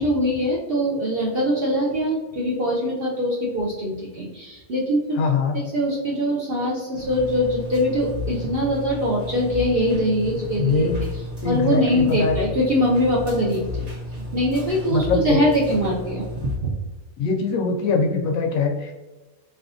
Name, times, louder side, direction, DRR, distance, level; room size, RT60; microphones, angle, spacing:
voice 1, 0.0-5.2 5.5-13.9 14.3-16.7, equal, 60° right, -3 dB, 0.6 m, -23 dB
voice 2, 5.2-5.5 10.6-11.0 11.4-12.4 14.9-15.4 17.2-18.9, left 4 dB, 70° left, 3 dB, 0.9 m, -22 dB
sound 1, 7.0-16.6, left 2 dB, 35° right, 0.8 m, -32 dB
3.8 x 3.4 x 2.5 m, 1.1 s
omnidirectional pair, 1.5 m